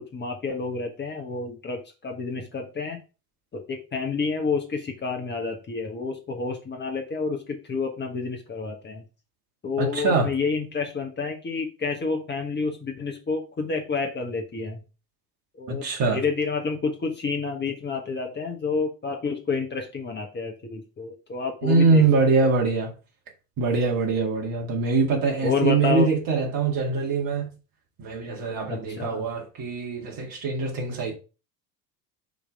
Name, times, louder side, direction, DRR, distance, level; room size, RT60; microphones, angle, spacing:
voice 1, 0.1-3.0 3.5-9.0 9.6-14.8 15.6-15.9 16.1-22.0 25.4-26.1 28.7-29.3, left 4 dB, 20° left, 1.2 m, -29 dB
voice 2, 9.8-10.3 15.7-16.2 21.6-22.9 23.6-27.5 28.0-31.1, right 4 dB, 45° right, 2.1 m, -23 dB
6.1 x 3.3 x 5.3 m
figure-of-eight pair, 65°, 48 cm